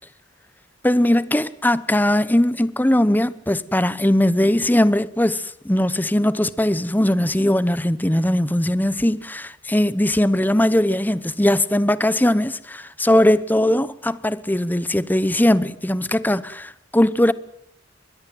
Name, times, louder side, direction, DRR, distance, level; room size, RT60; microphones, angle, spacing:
voice 1, 0.8-17.3, left 1 dB, 10° left, 0.9 m, -19 dB
23.5 x 21.0 x 7.7 m
head